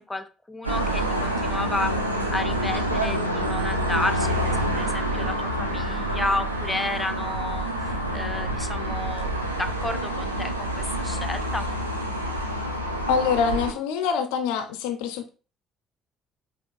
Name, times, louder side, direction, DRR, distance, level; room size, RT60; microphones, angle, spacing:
voice 1, 0.0-1.9 2.3-7.7 8.1-11.7, left 2 dB, 10° left, 0.5 m, -31 dB
sound 1, 0.6-13.7, right 1 dB, 90° right, 0.4 m, -27 dB
voice 2, 13.1-15.3, left 6 dB, 65° left, 0.3 m, -25 dB
5.0 x 2.9 x 2.4 m
figure-of-eight pair, 50°, 0 cm